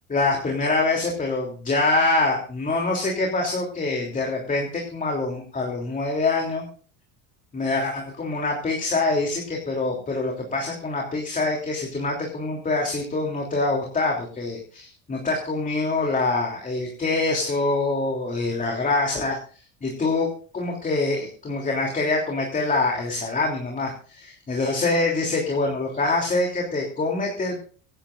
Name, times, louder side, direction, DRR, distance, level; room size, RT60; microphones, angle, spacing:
voice 1, 0.1-6.7 7.5-19.3 19.8-20.3 20.5-27.6, left 3 dB, 20° left, 0 dB, 3.2 m, -25 dB
25.0 x 10.0 x 2.6 m, 0.41 s
supercardioid pair, 115°, 36 cm